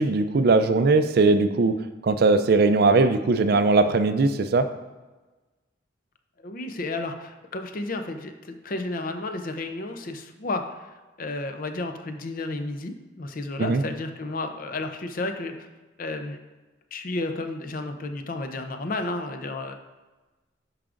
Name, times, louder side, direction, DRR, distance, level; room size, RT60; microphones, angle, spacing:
voice 1, 0.0-1.8 2.0-4.7 13.6-13.8, right 3 dB, 55° right, 10 dB, 0.4 m, -20 dB
voice 2, 6.4-15.7 16.0-16.4 16.9-19.7, left 2 dB, 45° left, 6 dB, 0.6 m, -32 dB
10.5 x 4.8 x 2.5 m, 1.2 s
head